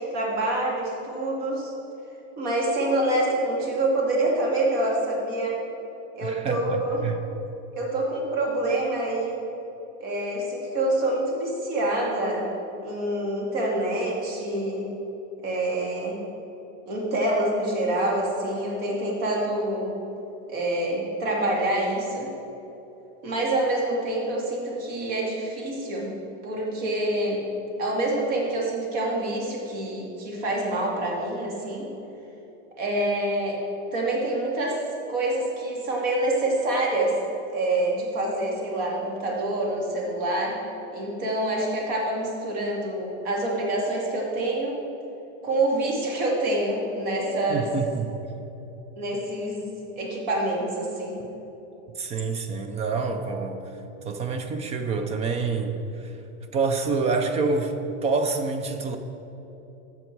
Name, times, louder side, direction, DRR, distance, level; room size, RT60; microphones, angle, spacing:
voice 1, 0.0-1.7 2.4-5.6 6.1-7.0 7.7-9.4 10.0-12.5 12.8-14.9 15.4-16.2 16.9-19.9 20.5-22.3 23.2-26.1 26.4-27.4 27.8-31.9 32.8-33.6 33.9-34.8 35.1-37.2 37.5-40.6 40.9-44.8 45.4-47.7 49.0-51.2, right 1 dB, 55° right, -2 dB, 2.6 m, -26 dB
voice 2, 6.2-7.2 47.5-48.1 52.0-53.6 54.0-56.1 56.5-57.7 58.0-59.0, right 4 dB, 20° right, 7 dB, 0.4 m, -27 dB
12.5 x 7.3 x 4.6 m, 3.0 s
supercardioid pair, 160°, 36 cm